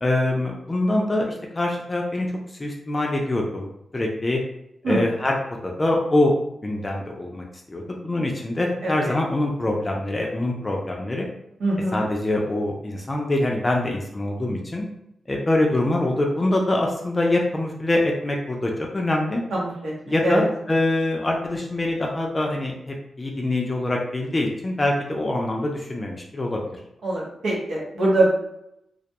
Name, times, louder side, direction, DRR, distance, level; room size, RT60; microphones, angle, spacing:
voice 1, 0.0-2.3 2.6-3.7 3.9-4.4 4.9-5.4 5.6-6.4 6.6-11.3 11.9-14.9 15.3-19.4 20.1-26.6, left 1 dB, 25° left, 0 dB, 0.4 m, -24 dB
voice 2, 8.8-9.2 11.6-12.0 19.5-19.9 20.2-20.4 27.0-28.3, right 1 dB, 85° right, -5 dB, 0.9 m, -23 dB
2.3 x 2.1 x 2.8 m, 0.79 s
cardioid pair, 95°, 0 cm